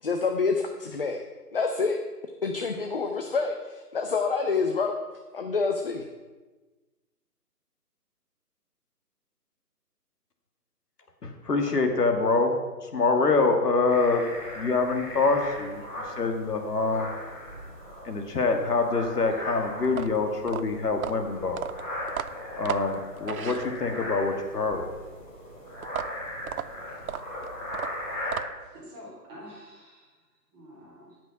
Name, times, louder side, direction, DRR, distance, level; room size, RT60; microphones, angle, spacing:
voice 1, 0.0-1.2 1.5-2.0 2.4-4.9 5.3-6.0, left 4 dB, 35° left, 4 dB, 0.7 m, -27 dB
voice 2, 11.2-12.5 12.8-14.2 14.5-15.8 16.2-17.1 18.0-21.6 22.6-24.8, left 3 dB, 70° left, 4 dB, 2.0 m, -25 dB
sound 1, 13.9-28.4, left 1 dB, 15° left, 3.1 m, -38 dB
sound 2, 19.8-24.2 25.8-28.8, right 9 dB, 65° right, 0.5 m, -36 dB
voice 3, 28.6-30.2 30.5-31.2, equal, 15° right, -5 dB, 2.4 m, -47 dB
16.0 x 6.1 x 5.8 m, 1.3 s
hypercardioid pair, 160°, 48 cm